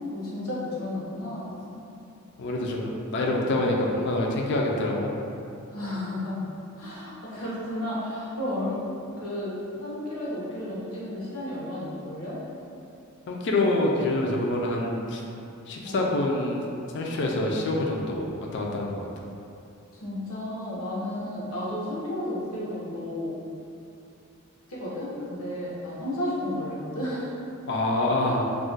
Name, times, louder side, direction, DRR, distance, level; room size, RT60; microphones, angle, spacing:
voice 1, 0.1-1.6 5.7-6.4 6.8-12.4 15.8-16.0 17.0-17.3 20.0-23.4 24.7-27.3 28.3-28.4, left 1 dB, 80° left, -7 dB, 0.8 m, -33 dB
voice 2, 2.4-5.1 13.3-15.2 15.7-19.1 27.7-28.4, left 2 dB, 55° left, -1 dB, 0.4 m, -26 dB
2.4 x 2.1 x 3.8 m, 2.6 s
head